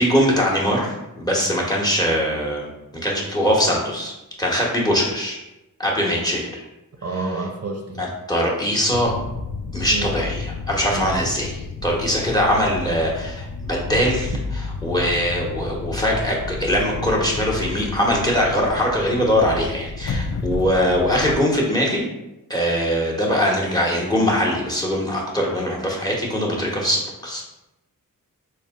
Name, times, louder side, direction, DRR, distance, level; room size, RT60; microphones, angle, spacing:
voice 1, 0.0-2.7 3.0-4.1 4.4-5.4 5.8-6.6 8.0-9.1 9.7-11.6 11.8-14.3 14.8-22.1 22.5-27.4, equal, 10° left, -2 dB, 1.0 m, -21 dB
voice 2, 7.0-8.0 9.9-10.1 10.9-11.2, right 3 dB, 45° right, 1 dB, 0.6 m, -29 dB
sound 1, 8.9-21.4, left 4 dB, 50° left, 0.4 m, -31 dB
4.0 x 2.2 x 3.6 m, 0.96 s
cardioid pair, 70°, 34 cm